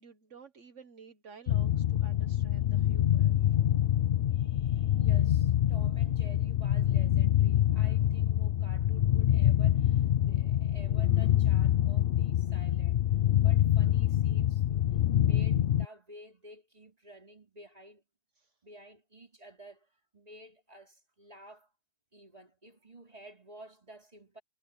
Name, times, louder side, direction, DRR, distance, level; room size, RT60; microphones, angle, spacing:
voice 1, 0.0-3.6 18.4-18.5, right 5 dB, 70° right, 1.8 m, -53 dB
sound 1, 1.5-15.9, left 12 dB, 60° left, 0.7 m, -26 dB
voice 2, 4.3-13.0 13.4-18.0 18.6-21.7 22.1-24.4, right 1 dB, 30° right, 4.5 m, -53 dB
omnidirectional pair, 1.3 m